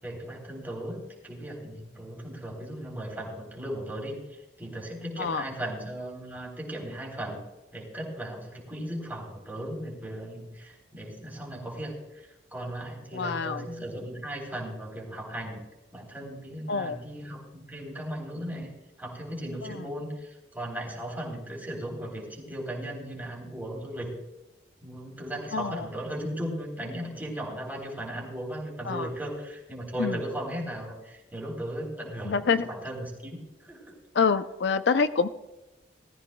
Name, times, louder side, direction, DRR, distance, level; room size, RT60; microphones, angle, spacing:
voice 1, 0.0-7.4 7.7-15.6 15.9-18.7 19.0-24.1 24.8-33.9, right 1 dB, 10° right, -2 dB, 3.5 m, -37 dB
voice 2, 13.1-13.7 16.7-17.0 19.6-19.9 25.5-25.9 28.9-29.1 30.0-30.2 32.2-32.7 34.1-35.3, left 5 dB, 65° left, 11 dB, 0.5 m, -26 dB
19.0 x 14.0 x 2.2 m, 1.0 s
head